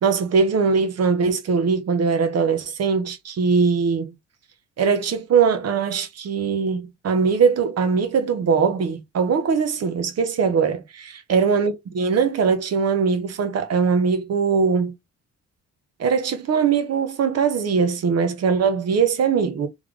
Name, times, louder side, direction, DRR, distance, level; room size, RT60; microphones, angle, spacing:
voice 1, 0.0-4.1 4.8-14.9 16.0-19.7, right 5 dB, 55° right, 1.0 m, -21 dB
3.4 x 3.3 x 3.6 m
cardioid pair, 90°, 30 cm